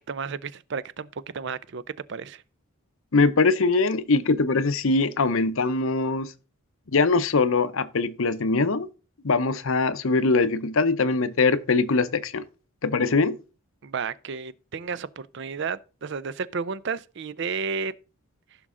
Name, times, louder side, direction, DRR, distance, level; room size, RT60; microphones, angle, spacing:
voice 1, 0.1-1.8 2.1-2.4 13.8-17.9, right 5 dB, 55° right, 0.5 m, -32 dB
voice 2, 3.1-6.3 6.9-8.9 9.2-12.4 12.8-13.4, left 3 dB, 65° left, 0.7 m, -22 dB
15.0 x 6.2 x 3.7 m
head